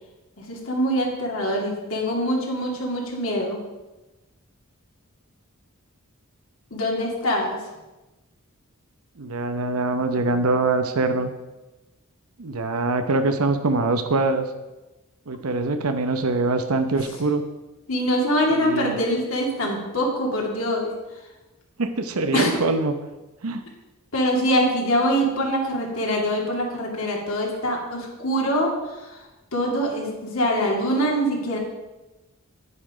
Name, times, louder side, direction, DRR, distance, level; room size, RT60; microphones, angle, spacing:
voice 1, 0.4-3.6 6.7-7.6 17.9-20.9 22.3-22.5 24.1-29.2 29.5-31.6, equal, 70° left, -2 dB, 2.6 m, -24 dB
voice 2, 9.2-11.3 12.4-14.5 15.3-17.4 18.6-19.0 21.8-22.9 23.4-23.6, right 3 dB, 85° right, 7 dB, 0.8 m, -23 dB
9.8 x 9.6 x 5.0 m, 1.1 s
head